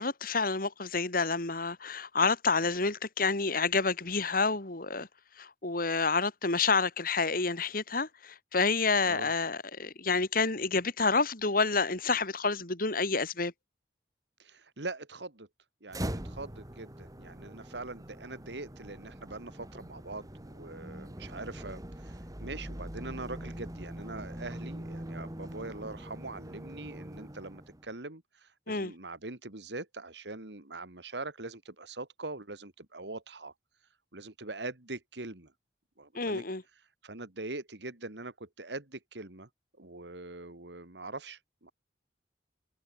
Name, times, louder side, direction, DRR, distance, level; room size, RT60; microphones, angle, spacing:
voice 1, 0.0-5.1 5.4-13.5 28.7-28.9 36.1-36.6, left 4 dB, 55° left, 3.2 m, -29 dB
voice 2, 14.4-15.5 15.8-33.5 34.1-35.5 36.0-36.4 37.0-39.5 39.8-41.7, right 2 dB, 80° right, 2.6 m, -42 dB
sound 1, 15.9-27.9, right 1 dB, 20° right, 2.0 m, -43 dB
head